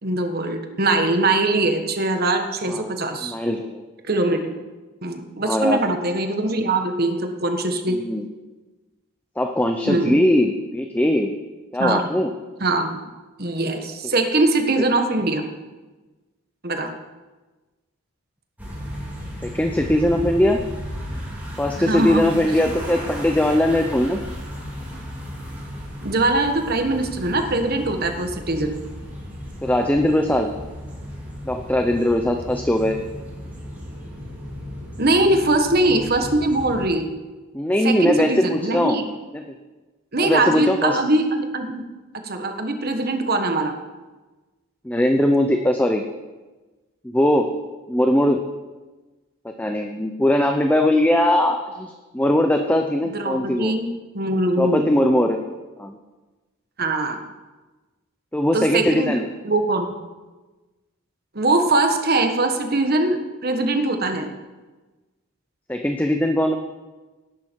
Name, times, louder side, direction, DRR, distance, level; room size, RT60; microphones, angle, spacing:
voice 1, 0.0-3.3 4.0-4.5 5.0-8.0 9.9-10.2 11.8-12.1 12.6-13.0 13.4-15.4 16.6-16.9 21.8-22.3 26.0-28.8 35.0-37.1 37.8-39.0 40.1-41.8 42.2-43.7 53.1-54.9 56.8-57.2 58.5-59.9 61.3-64.3, right 2 dB, 45° right, 5 dB, 1.4 m, -22 dB
voice 2, 3.2-3.8 5.4-5.8 7.9-8.2 9.4-11.3 11.7-12.3 19.4-20.6 21.6-24.2 29.6-30.5 31.4-33.0 37.5-39.0 39.3-39.5 40.2-41.0 44.8-46.0 47.0-47.6 47.9-48.4 49.6-53.7 54.6-55.4 55.8-56.0 58.3-59.2 65.7-66.6, left 1 dB, 5° left, 4 dB, 0.6 m, -20 dB
sound 1, 18.6-36.9, equal, 10° right, 3.2 m, -35 dB
18.0 x 11.0 x 4.6 m, 1.2 s
head